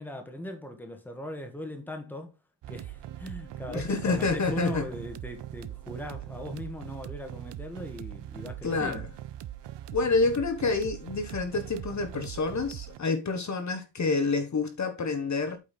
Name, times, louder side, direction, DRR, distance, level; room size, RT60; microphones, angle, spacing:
voice 1, 0.0-2.4 2.7-9.1, equal, 5° left, 1.3 m, -39 dB
sound 1, 2.6-13.0, right 12 dB, 75° right, 0.7 m, -41 dB
voice 2, 3.7-4.8 8.6-9.0 9.9-15.6, left 4 dB, 40° left, 1.1 m, -28 dB
8.4 x 5.4 x 4.2 m
wide cardioid pair, 175°, 43 cm